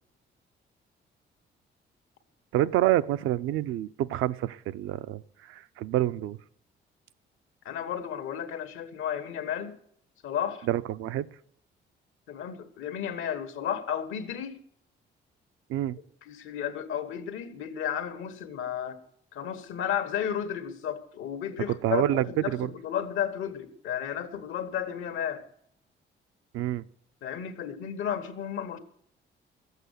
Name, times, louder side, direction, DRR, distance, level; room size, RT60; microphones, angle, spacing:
voice 1, 2.5-5.2 5.5-6.4 10.7-11.3 15.7-16.0 21.8-22.7 26.5-26.8, right 13 dB, 85° right, 0.5 m, -27 dB
voice 2, 7.6-9.8 10.2-10.7 12.3-14.6 16.2-19.0 19.3-25.5 27.2-28.8, left 9 dB, 90° left, 1.5 m, -33 dB
14.0 x 8.1 x 8.1 m
cardioid pair, 90°, 20 cm